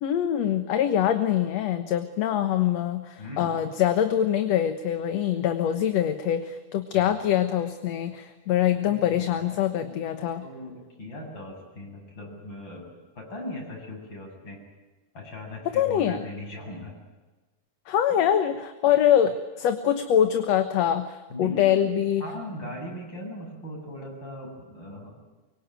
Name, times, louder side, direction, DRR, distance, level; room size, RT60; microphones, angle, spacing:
voice 1, 0.0-10.4 15.7-16.2 17.9-22.2, left 10 dB, 65° left, 8 dB, 2.2 m, -24 dB
voice 2, 3.2-3.5 6.9-7.0 8.8-9.9 10.4-12.9 13.1-14.6 15.1-16.9 18.1-18.2 21.3-21.9 22.2-25.2, left 1 dB, 35° left, 1 dB, 8.3 m, -39 dB
24.5 x 24.0 x 9.0 m, 1.2 s
omnidirectional pair, 3.6 m